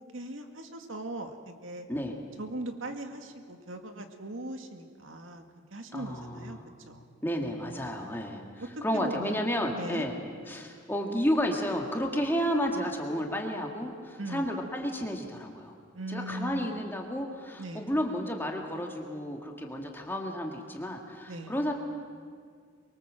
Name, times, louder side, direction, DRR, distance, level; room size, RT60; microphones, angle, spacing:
voice 1, 0.1-1.9 2.4-5.4 5.7-6.6 6.9-7.0 8.6-10.1 14.2-14.5 15.9-16.9 17.6-17.9 21.3-21.5, right 1 dB, 90° right, 5 dB, 2.1 m, -39 dB
voice 2, 5.9-6.6 7.2-8.4 8.8-10.2 10.5-15.7 16.1-21.7, equal, 10° left, 1 dB, 2.0 m, -31 dB
24.0 x 23.5 x 7.6 m, 2.1 s
head